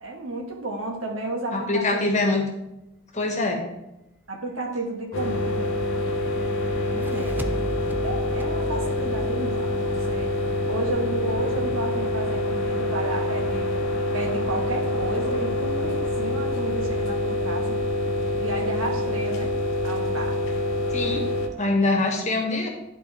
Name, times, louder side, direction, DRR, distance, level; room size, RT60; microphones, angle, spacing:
voice 1, 0.0-2.2 4.3-5.7 6.9-7.6 8.0-10.3 10.7-13.7 14.1-17.8 18.4-19.5 19.8-20.4, right 2 dB, 70° right, 1 dB, 1.4 m, -32 dB
voice 2, 1.5-2.4 3.1-3.6 20.9-21.3 21.6-22.7, left 2 dB, 35° left, 1 dB, 1.3 m, -23 dB
sound 1, 5.1-21.5, left 1 dB, 70° left, 1.0 m, -26 dB
sound 2, 6.8-10.1, right 2 dB, 10° right, 0.3 m, -36 dB
11.0 x 3.9 x 3.4 m, 0.92 s
head